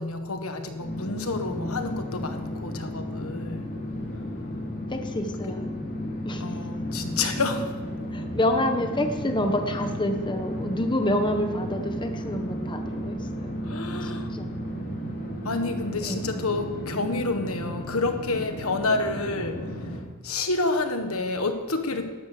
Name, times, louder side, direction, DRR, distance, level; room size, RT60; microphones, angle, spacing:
voice 1, 0.0-3.7 5.5-5.6 6.4-7.7 13.6-14.3 15.4-19.6 20.2-22.1, left 3 dB, 70° left, 7 dB, 1.5 m, -29 dB
sound 1, 0.8-20.0, equal, 40° left, 3.0 m, -33 dB
voice 2, 4.9-5.7 6.2-6.6 8.1-13.6 14.0-14.5 16.0-16.3, left 1 dB, 20° left, 5 dB, 1.0 m, -28 dB
12.5 x 12.5 x 6.7 m, 1.4 s
head